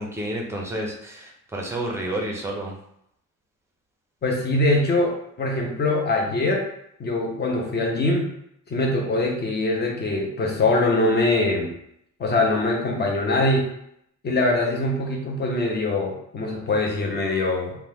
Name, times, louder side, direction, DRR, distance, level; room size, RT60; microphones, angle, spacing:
voice 1, 0.0-2.8, right 1 dB, 10° right, -1 dB, 0.5 m, -30 dB
voice 2, 4.2-6.7 7.0-8.3 8.7-11.7 12.2-13.7 14.2-17.8, left 2 dB, 30° left, 0 dB, 0.6 m, -23 dB
2.9 x 2.1 x 3.4 m, 0.74 s
cardioid pair, 155°, 32 cm